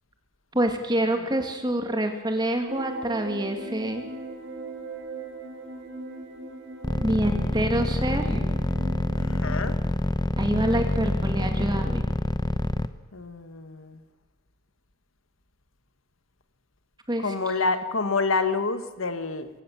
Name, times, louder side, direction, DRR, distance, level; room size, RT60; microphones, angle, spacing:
voice 1, 0.5-4.0 7.0-8.4 10.4-12.0 17.1-17.3, right 1 dB, 20° right, 5 dB, 2.3 m, -26 dB
sound 1, 2.7-9.6, right 2 dB, 60° right, 3.0 m, -39 dB
sound 2, 6.8-12.9, left 1 dB, 20° left, 0.7 m, -26 dB
voice 2, 7.3-7.6 9.2-9.8 13.1-14.0 17.2-19.5, left 3 dB, 75° left, 10 dB, 1.5 m, -28 dB
23.0 x 16.5 x 7.4 m, 1.2 s
head